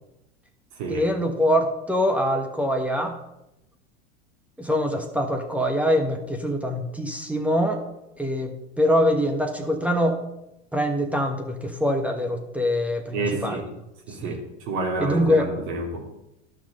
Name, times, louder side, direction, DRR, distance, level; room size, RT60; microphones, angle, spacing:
voice 1, 0.9-3.2 4.6-7.8 8.2-10.2 10.7-13.6 14.2-14.4 15.0-15.5, equal, 5° right, 4 dB, 1.3 m, -24 dB
voice 2, 13.1-13.6 14.1-16.0, right 2 dB, 65° right, -1 dB, 3.1 m, -29 dB
12.0 x 6.1 x 5.3 m, 0.89 s
hypercardioid pair, 90°, 35 cm